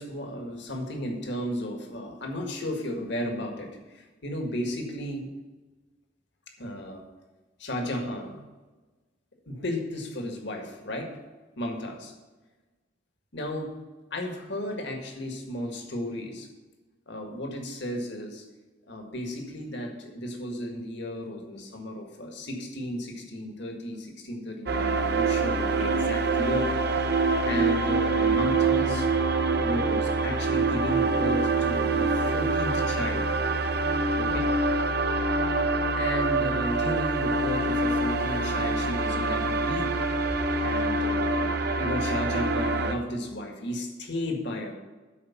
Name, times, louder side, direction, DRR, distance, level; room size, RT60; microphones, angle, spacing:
voice 1, 0.0-5.3 6.6-7.0 7.6-8.4 9.5-11.1 11.6-12.1 13.3-13.7 14.1-16.5 17.1-18.4 18.9-27.2 27.4-29.1 29.6-33.3 34.2-34.5 35.9-40.0 40.6-41.5 41.7-44.7, left 1 dB, 65° left, 3 dB, 1.9 m, -34 dB
sound 1, 24.7-42.9, right 3 dB, 60° right, 0.8 m, -25 dB
12.0 x 4.8 x 7.2 m, 1.2 s
head